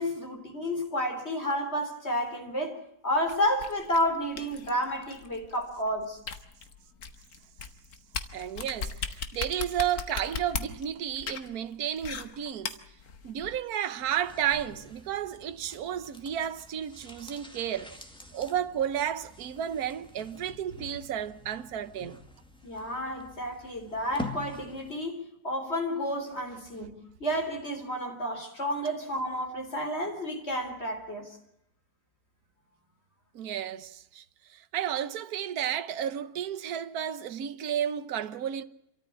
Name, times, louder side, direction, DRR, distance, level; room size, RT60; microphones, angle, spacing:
voice 1, 0.0-6.2 22.6-26.9 27.2-31.4, equal, 35° left, 4.2 m, -31 dB
gentle hitting a spoon on a plate of wet food, 3.3-13.6, left 6 dB, 55° left, 1.9 m, -38 dB
voice 2, 8.3-12.8 13.2-17.9 18.3-22.2 33.3-38.6, right 10 dB, 60° right, 1.5 m, -32 dB
sound 1, 13.9-25.1 25.4-25.5, left 2 dB, 5° left, 2.0 m, -46 dB
27.5 x 13.5 x 8.6 m
omnidirectional pair, 1.9 m